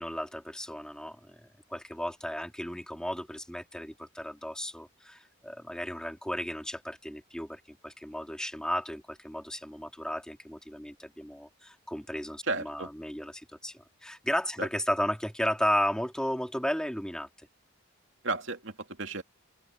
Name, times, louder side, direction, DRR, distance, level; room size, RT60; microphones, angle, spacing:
voice 1, 0.0-17.5, equal, 5° left, 2.7 m, -34 dB
voice 2, 12.5-12.9 14.6-14.7 18.2-19.2, right 3 dB, 65° right, 2.7 m, -33 dB
open air
head